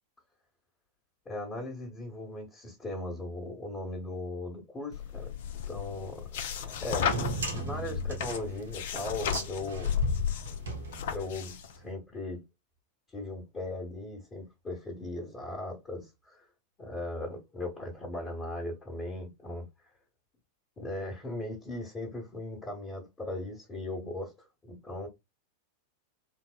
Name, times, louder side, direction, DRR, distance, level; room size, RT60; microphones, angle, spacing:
voice 1, 1.2-5.3 5.7-9.9 11.1-12.4 13.1-16.5 16.8-19.7 20.8-25.1, left 2 dB, 20° left, 1.1 m, -38 dB
sound 1, 4.9-11.7, left 8 dB, 55° left, 0.4 m, -34 dB
sound 2, 6.9-11.5, right 3 dB, 70° right, 1.0 m, -37 dB
3.4 x 2.0 x 2.3 m
figure-of-eight pair, 90°, 0 cm